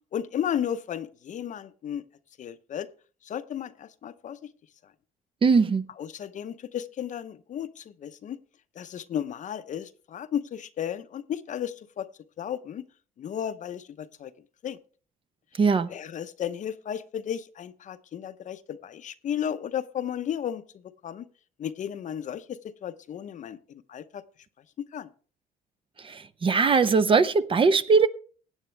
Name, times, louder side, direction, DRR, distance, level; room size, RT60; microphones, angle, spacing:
voice 1, 0.1-2.0 2.4-2.9 3.2-4.5 6.0-8.4 8.8-12.1 12.4-12.8 13.2-14.3 14.6-14.8 15.9-21.3 21.6-24.2 24.9-25.1, left 9 dB, 50° left, 0.7 m, -34 dB
voice 2, 5.4-5.8 15.6-15.9 26.0-28.1, right 5 dB, 30° right, 0.6 m, -20 dB
16.5 x 8.9 x 3.3 m
cardioid pair, 110°, 17 cm